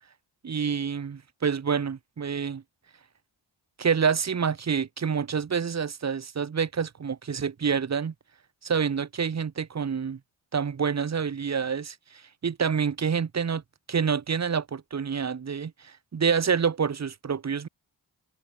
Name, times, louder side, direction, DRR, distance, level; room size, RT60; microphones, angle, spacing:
voice 1, 0.4-2.6 3.8-8.1 8.6-10.2 10.5-13.6 13.9-17.7, right 6 dB, 35° right, 0.8 m, -27 dB
cardioid pair, 45°, 47 cm